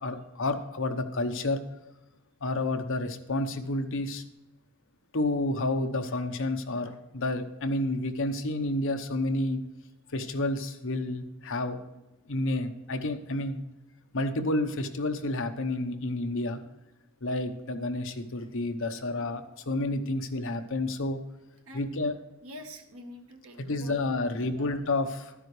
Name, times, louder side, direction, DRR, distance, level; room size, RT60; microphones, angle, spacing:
voice 1, 0.0-1.6 2.4-4.2 5.1-9.6 10.1-11.8 12.3-13.6 14.1-16.6 17.2-21.2 21.7-22.2 23.6-25.3, left 2 dB, 60° left, 7 dB, 0.9 m, -30 dB
voice 2, 22.4-24.8, equal, 70° right, 3 dB, 1.5 m, -47 dB
12.5 x 9.9 x 3.2 m, 0.98 s
head